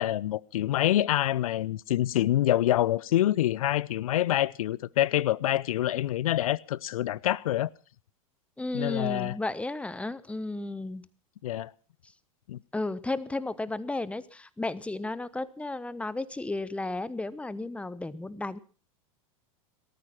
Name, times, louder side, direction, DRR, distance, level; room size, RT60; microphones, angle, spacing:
voice 1, 0.0-7.7 8.7-9.4 11.4-11.7 12.5-12.6, left 13 dB, 75° left, 0.7 m, -26 dB
voice 2, 8.6-11.1 12.7-18.6, left 2 dB, 5° left, 0.9 m, -33 dB
17.5 x 13.5 x 5.7 m
hypercardioid pair, 95°, 18 cm